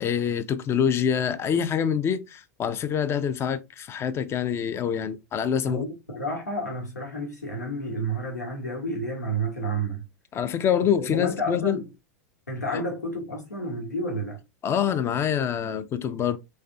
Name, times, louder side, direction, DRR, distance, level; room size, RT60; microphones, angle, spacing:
voice 1, 0.0-5.9 10.3-11.8 12.7-12.8 14.6-16.4, left 8 dB, 30° left, 0.5 m, -25 dB
voice 2, 6.1-10.0 10.8-11.8 12.5-14.4, right 1 dB, 85° left, 1.2 m, -30 dB
3.3 x 3.2 x 2.5 m
figure-of-eight pair, 90°, 9 cm